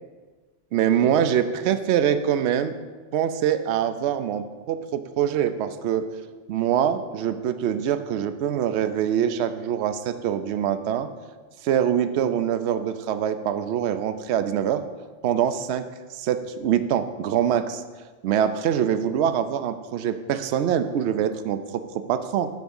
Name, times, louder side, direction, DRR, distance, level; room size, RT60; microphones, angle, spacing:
voice 1, 0.7-2.7 3.1-6.1 6.5-11.1 11.6-14.8 15.2-15.8 16.1-17.8 18.2-22.5, right 9 dB, 70° right, 11 dB, 0.8 m, -24 dB
9.3 x 3.5 x 7.0 m, 1.4 s
omnidirectional pair, 1.3 m